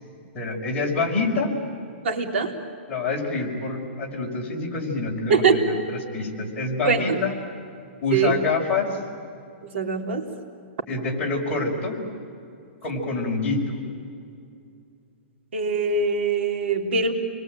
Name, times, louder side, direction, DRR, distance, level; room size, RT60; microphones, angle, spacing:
voice 1, 0.3-1.5 2.9-7.3 8.0-9.0 10.9-12.0 12.8-13.8, left 3 dB, 15° left, -4 dB, 5.3 m, -26 dB
voice 2, 2.0-2.5 5.3-5.6 6.8-7.2 8.1-8.3 9.6-10.3 15.5-17.1, right 4 dB, 70° right, 2 dB, 3.7 m, -22 dB
30.0 x 22.0 x 9.1 m, 2.5 s
hypercardioid pair, 170°, 7 cm